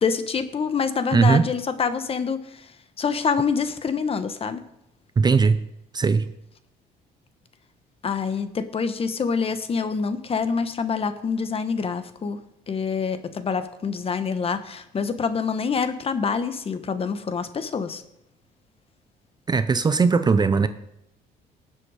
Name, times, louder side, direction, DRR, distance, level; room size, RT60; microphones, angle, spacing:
voice 1, 0.0-2.6 3.0-4.6 8.0-12.4 12.7-18.0, left 5 dB, 35° left, 10 dB, 1.1 m, -26 dB
voice 2, 1.1-1.5 5.2-5.6 5.9-6.3 19.5-20.7, right 5 dB, 25° right, 11 dB, 0.6 m, -19 dB
18.5 x 7.7 x 4.9 m, 0.84 s
cardioid pair, 110°, 17 cm